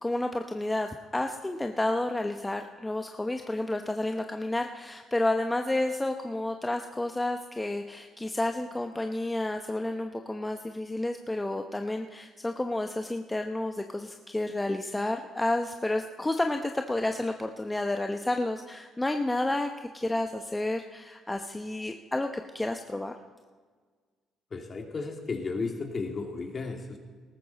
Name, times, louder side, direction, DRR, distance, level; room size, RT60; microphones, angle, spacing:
voice 1, 0.0-22.3 22.5-23.2, left 2 dB, 15° left, 5 dB, 0.9 m, -30 dB
voice 2, 24.5-27.0, left 4 dB, 40° left, 3 dB, 2.5 m, -34 dB
18.5 x 14.0 x 4.1 m, 1.5 s
supercardioid pair, 60°, 0 cm